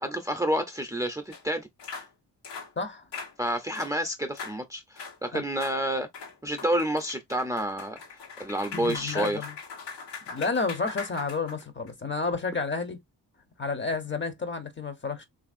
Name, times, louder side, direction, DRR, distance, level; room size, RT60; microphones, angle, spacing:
voice 1, 0.0-1.7 3.4-6.1 6.4-8.0 8.4-9.5, right 1 dB, 10° right, 0.6 m, -29 dB
sound 1, 1.3-1.4 1.8-2.1 2.4-2.7 3.1-3.3 3.7-3.9 4.3-4.6 5.0-5.2 5.6-5.8 6.1-11.9, left 5 dB, 90° left, 1.3 m, -41 dB
voice 2, 2.8-3.1 5.3-5.4 8.7-9.5 10.3-13.0 13.6-15.2, left 4 dB, 25° left, 0.8 m, -31 dB
2.9 x 2.6 x 2.5 m
supercardioid pair, 50°, 43 cm